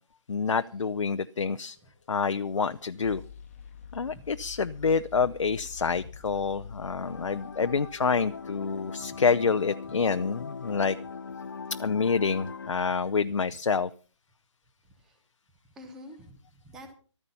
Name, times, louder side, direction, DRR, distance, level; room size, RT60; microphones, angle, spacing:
voice 1, 0.3-1.8 2.1-3.2 3.9-11.0 11.8-13.9, left 5 dB, 75° left, 10 dB, 0.7 m, -27 dB
sound 1, 1.2-8.9, left 7 dB, 25° left, 1.2 m, -48 dB
sound 2, 7.0-12.7, left 5 dB, 50° left, 0.8 m, -40 dB
voice 2, 14.8-15.2 15.7-16.9, equal, 5° right, 6 dB, 0.7 m, -48 dB
14.5 x 14.0 x 5.5 m, 0.38 s
hypercardioid pair, 175°, 16 cm